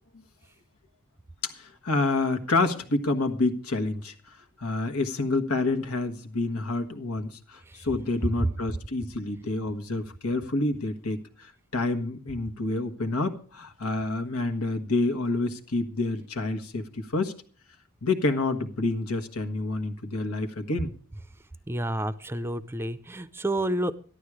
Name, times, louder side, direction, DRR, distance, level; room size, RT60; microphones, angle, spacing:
voice 1, 1.4-4.1 4.6-17.4 18.0-20.9, left 2 dB, 80° left, 7 dB, 1.5 m, -28 dB
voice 2, 21.7-23.9, right 1 dB, 10° right, 15 dB, 0.6 m, -29 dB
13.5 x 11.5 x 4.9 m, 0.43 s
head